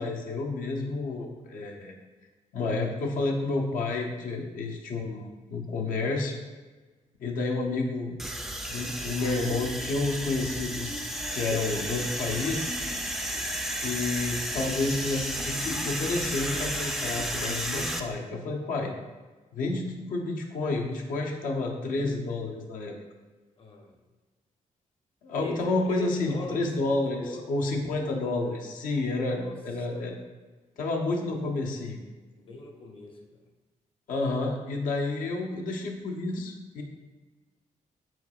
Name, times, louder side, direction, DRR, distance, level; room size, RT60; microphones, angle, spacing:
voice 1, 0.0-1.9 2.5-6.4 7.2-8.2 8.7-11.1 11.3-12.7 13.7-18.9 19.5-23.0 25.2-30.2 30.8-32.0 34.1-36.8, left 3 dB, 85° left, 1 dB, 0.7 m, -30 dB
sound 1, 8.2-18.0, equal, ahead, 0.3 m, -32 dB
voice 2, 23.6-23.9 25.3-26.7 27.1-27.5 29.2-29.5 29.9-30.1 32.4-33.4, left 2 dB, 40° left, 2 dB, 0.7 m, -40 dB
4.6 x 4.5 x 2.4 m, 1.3 s
cardioid pair, 130°, 14 cm